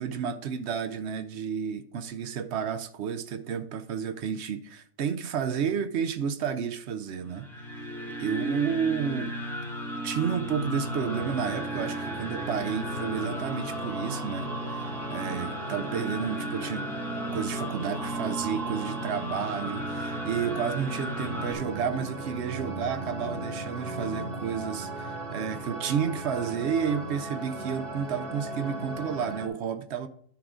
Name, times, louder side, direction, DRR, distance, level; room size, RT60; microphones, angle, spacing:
voice 1, 0.0-7.5 7.8-7.9 8.2-9.3 10.0-16.9 17.3-30.1, right 7 dB, 65° right, 0.8 m, -31 dB
sound 1, 7.3-21.5, right 1 dB, ahead, 1.0 m, -35 dB
sound 2, 10.6-29.5, right 2 dB, 45° right, 1.3 m, -37 dB
10.0 x 3.7 x 4.9 m
omnidirectional pair, 1.4 m